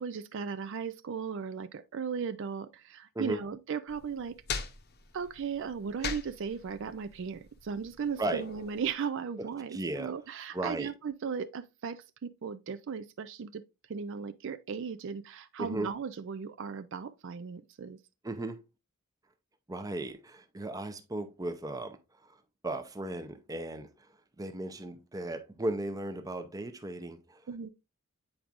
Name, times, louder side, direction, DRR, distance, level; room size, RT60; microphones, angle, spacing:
voice 1, 0.0-4.4 5.1-13.6 13.9-18.0 27.5-27.7, right 6 dB, 60° right, 0.4 m, -37 dB
sound 1, 3.9-8.9, left 5 dB, 50° left, 0.8 m, -41 dB
voice 2, 9.7-10.1 10.5-10.9 15.6-15.9 18.2-18.6 19.7-22.0 22.2-22.3 22.6-23.9 24.4-27.4, right 2 dB, 15° right, 0.6 m, -36 dB
8.6 x 4.6 x 2.5 m
head